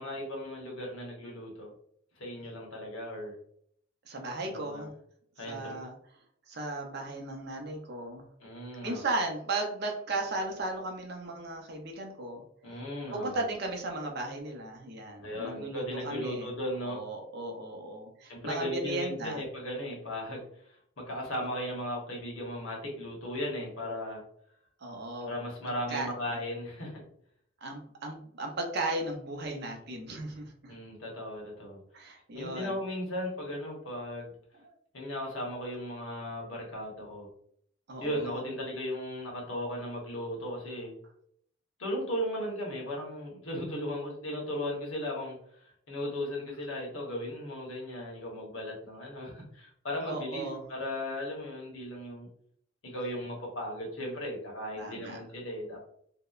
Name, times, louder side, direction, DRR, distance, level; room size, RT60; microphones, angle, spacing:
voice 1, 0.0-1.7 2.2-3.3 4.4-4.8 5.4-5.8 8.4-9.1 12.6-13.4 15.2-17.0 18.3-20.5 21.0-24.2 25.2-27.0 30.7-31.8 32.3-34.3 34.9-37.3 38.0-40.9 41.8-45.4 45.9-52.3 52.8-55.8, left 1 dB, 75° left, -1 dB, 0.9 m, -36 dB
voice 2, 4.1-4.9 5.4-5.9 6.5-8.2 8.8-12.4 13.1-16.5 16.8-19.4 24.8-25.3 25.6-26.1 27.6-30.7 31.9-32.8 34.5-34.7 37.9-38.3 50.0-50.6 54.8-55.2, right 2 dB, 50° right, 2 dB, 0.5 m, -36 dB
2.7 x 2.0 x 2.3 m, 0.66 s
head